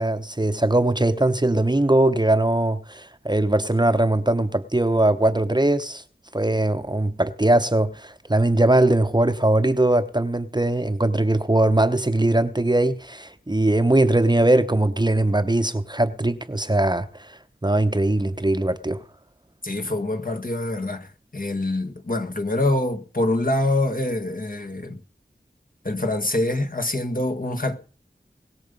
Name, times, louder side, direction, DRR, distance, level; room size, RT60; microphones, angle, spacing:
voice 1, 0.0-6.0 6.3-17.1 17.6-19.0, right 1 dB, 25° right, 0.9 m, -20 dB
voice 2, 19.6-21.1 21.3-25.0 25.8-27.8, left 1 dB, 50° left, 1.6 m, -25 dB
20.5 x 6.9 x 5.3 m
wide cardioid pair, 50°, 18 cm